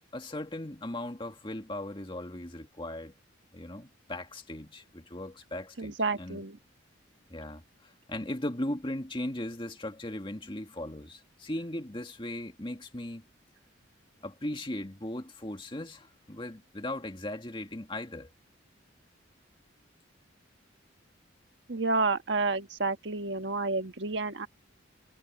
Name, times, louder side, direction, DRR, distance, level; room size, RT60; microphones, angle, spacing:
voice 1, 0.1-3.1 3.5-6.4 7.3-13.2 14.2-18.3, left 1 dB, 25° left, 2.0 m, -38 dB
voice 2, 5.8-6.6 21.7-24.5, right 3 dB, 60° right, 1.5 m, -30 dB
head